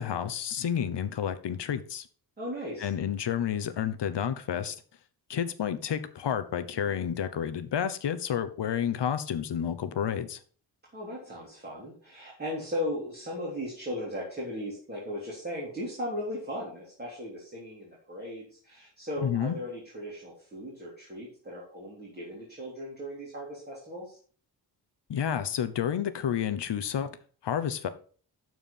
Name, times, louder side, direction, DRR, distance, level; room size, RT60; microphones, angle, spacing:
voice 1, 0.0-2.1 2.8-4.8 5.3-10.4 19.2-19.6 25.1-27.1 27.4-27.9, left 8 dB, 75° left, 1.1 m, -30 dB
voice 2, 2.4-2.9 10.9-24.2, left 1 dB, 25° right, 3.4 m, -37 dB
12.5 x 4.8 x 5.6 m
wide cardioid pair, 165°, 42 cm